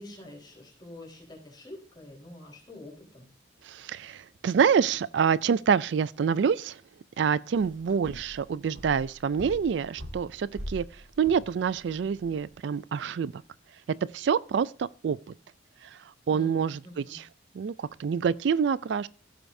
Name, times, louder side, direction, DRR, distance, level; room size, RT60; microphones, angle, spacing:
voice 1, 0.0-3.3 7.9-8.1 16.3-16.5 16.8-17.2, left 1 dB, 20° left, 4.1 m, -46 dB
voice 2, 3.6-6.8 7.2-13.4 13.9-15.2 15.8-16.0 16.3-17.2 17.5-19.1, right 7 dB, 65° right, 0.3 m, -27 dB
sound 1, 7.5-12.5, equal, 80° right, 2.3 m, -44 dB
15.5 x 7.8 x 2.6 m
head